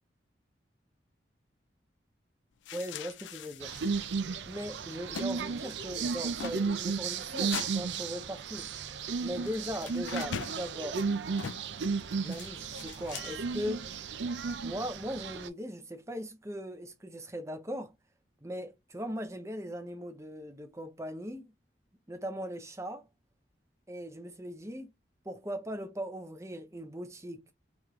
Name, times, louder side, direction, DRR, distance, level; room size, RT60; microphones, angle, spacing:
sound 1, 2.7-4.0 4.3-4.4 4.7-5.3 5.5-5.8 6.1-6.6 7.5-7.7 9.4-10.6 11.4-11.7 12.2-13.6, left 8 dB, 85° left, 0.4 m, -41 dB
voice 1, 2.7-3.7 4.5-8.7 9.2-11.0 12.2-13.9 14.6-17.9 18.4-21.5 22.1-23.1 23.9-24.9 25.2-27.5, equal, 15° right, 0.7 m, -39 dB
sound 2, 3.6-15.5, right 5 dB, 75° right, 0.5 m, -34 dB
3.6 x 3.1 x 3.1 m
head